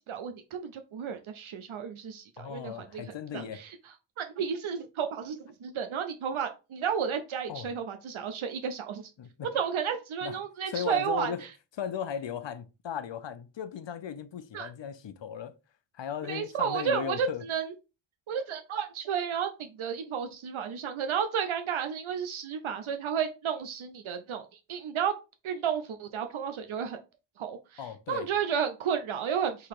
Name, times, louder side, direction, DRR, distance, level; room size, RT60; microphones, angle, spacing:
voice 1, 0.0-3.0 3.3-3.8 4.2-9.1 9.5-11.5 14.5-14.7 16.3-17.7 18.3-25.1 25.4-27.0 27.4-27.8 28.1-29.7, right 7 dB, 80° right, 0.6 m, -32 dB
voice 2, 2.4-3.6 7.5-7.7 9.2-9.5 10.2-10.4 10.7-11.4 11.8-15.6 15.9-17.4 27.8-28.3, left 8 dB, 65° left, 0.7 m, -37 dB
3.9 x 2.9 x 4.6 m
wide cardioid pair, 80°, 48 cm